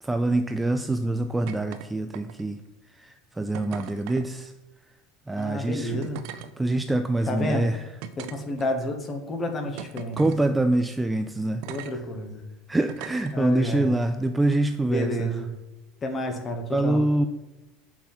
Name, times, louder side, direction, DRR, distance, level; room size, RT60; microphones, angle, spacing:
voice 1, 0.0-2.6 2.9-4.5 5.3-6.1 6.6-7.8 10.2-11.6 12.7-15.3 16.7-17.3, right 2 dB, 10° right, 8 dB, 0.3 m, -25 dB
sound 1, 1.5-1.9 2.1-2.6 3.5-4.2 5.3-5.4 6.0-6.5 7.2-7.3 8.0-8.9 9.8-10.4 11.6-11.9 12.9-13.3 14.4-14.6, right 10 dB, 65° right, 0.6 m, -39 dB
voice 2, 5.4-6.3 7.3-7.7 8.2-10.2 11.6-12.4 13.3-13.8 14.8-15.5 16.0-17.0, left 1 dB, 25° left, 5 dB, 1.1 m, -30 dB
7.3 x 5.9 x 4.3 m, 1.0 s
supercardioid pair, 145°, 0 cm